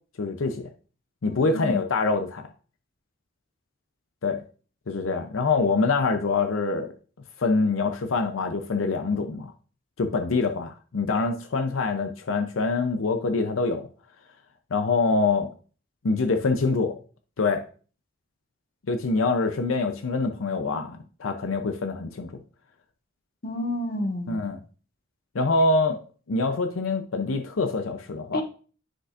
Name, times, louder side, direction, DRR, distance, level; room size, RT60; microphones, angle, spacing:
voice 1, 0.2-0.7 1.2-2.5 4.2-4.4 4.9-6.9 7.4-9.5 10.0-13.8 14.7-15.5 16.0-17.0 17.4-17.6 18.9-22.3 24.3-24.6 25.3-26.0 26.3-28.4, left 3 dB, 85° left, 6 dB, 0.6 m, -25 dB
voice 2, 1.2-1.8 23.4-24.4 28.3-28.4, left 1 dB, 45° left, 3 dB, 1.3 m, -30 dB
9.9 x 5.1 x 2.5 m, 0.39 s
head